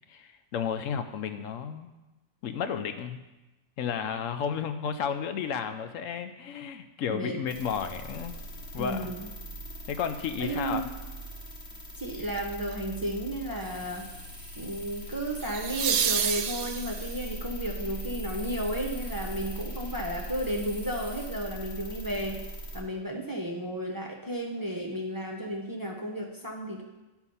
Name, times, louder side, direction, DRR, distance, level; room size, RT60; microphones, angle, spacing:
voice 1, 0.1-1.9 2.4-3.2 3.8-8.4 8.7-9.1 9.9-10.8, left 7 dB, 75° left, 8 dB, 1.0 m, -32 dB
voice 2, 7.1-7.4 8.8-9.3 10.4-10.9 12.0-14.1 14.6-22.4 22.7-26.8, right 1 dB, 20° right, 0 dB, 0.7 m, -33 dB
sound 1, 7.5-22.8, right 1 dB, 50° left, 1.4 m, -40 dB
sound 2, 12.4-12.7 15.4-17.3 20.2-20.3, right 8 dB, 70° right, 0.9 m, -29 dB
sound 3, 13.6-21.3, equal, 30° left, 3.2 m, -51 dB
11.5 x 4.6 x 5.5 m, 1.1 s
omnidirectional pair, 1.4 m